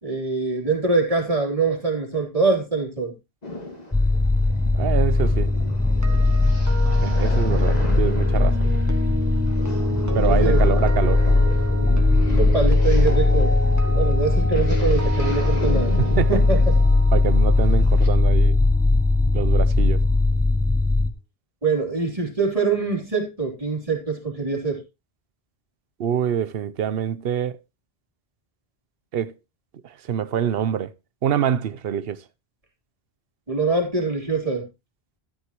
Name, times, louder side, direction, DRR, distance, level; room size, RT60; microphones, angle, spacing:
voice 1, 0.0-3.1 10.3-10.6 12.2-13.6 13.9-16.0 16.3-16.8 21.6-24.8 33.5-34.6, right 4 dB, 35° right, 3.3 m, -24 dB
sound 1, 3.4-18.1, left 2 dB, 40° left, 2.1 m, -36 dB
sound 2, 3.9-21.1, left 2 dB, 10° left, 0.6 m, -19 dB
voice 2, 4.7-5.5 7.0-8.7 10.1-11.2 16.2-16.3 17.1-18.6 19.3-20.0 26.0-27.6 29.1-29.3 30.1-30.9 31.2-32.2, right 9 dB, 65° right, 0.9 m, -25 dB
sound 3, 5.8-19.9 20.1-20.4, right 1 dB, 15° right, 1.5 m, -33 dB
13.0 x 9.4 x 2.9 m
omnidirectional pair, 1.1 m